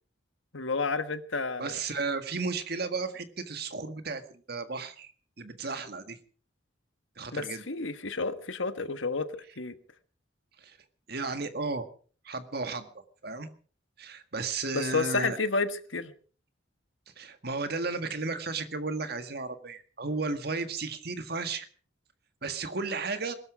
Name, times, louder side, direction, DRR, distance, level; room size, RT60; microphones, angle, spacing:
voice 1, 0.5-1.7 7.3-9.7 14.7-16.1, left 4 dB, 85° left, 1.5 m, -31 dB
voice 2, 1.6-5.1 5.4-6.2 7.2-7.6 10.6-10.8 11.1-11.9 12.2-13.5 14.0-15.4 17.2-21.7 22.4-23.3, right 3 dB, 55° right, 1.7 m, -34 dB
21.5 x 12.5 x 5.0 m
head